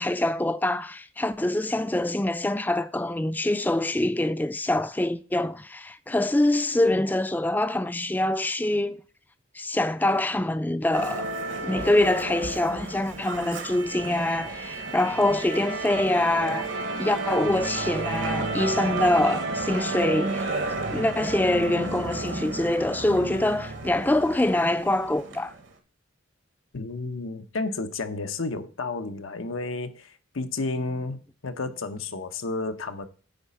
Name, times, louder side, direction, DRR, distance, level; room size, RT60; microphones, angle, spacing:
voice 1, 0.0-9.0 9.5-11.3 11.6-16.7 17.0-20.5 20.9-25.5, left 1 dB, 10° left, 0.4 m, -25 dB
Musical instrument, 10.9-25.6, right 3 dB, 70° right, 1.3 m, -32 dB
voice 2, 26.7-33.1, left 3 dB, 90° left, 0.9 m, -32 dB
9.0 x 4.1 x 5.6 m
head